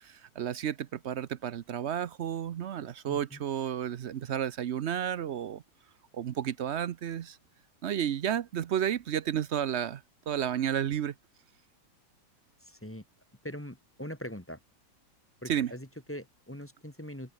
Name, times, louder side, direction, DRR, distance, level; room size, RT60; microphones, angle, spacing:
voice 1, 0.0-5.6 6.1-7.4 7.8-11.1 15.5-15.7, right 9 dB, 65° right, 0.7 m, -32 dB
voice 2, 3.1-3.4 12.6-13.0 13.4-14.6 15.4-17.3, equal, 5° left, 1.8 m, -42 dB
omnidirectional pair, 1.9 m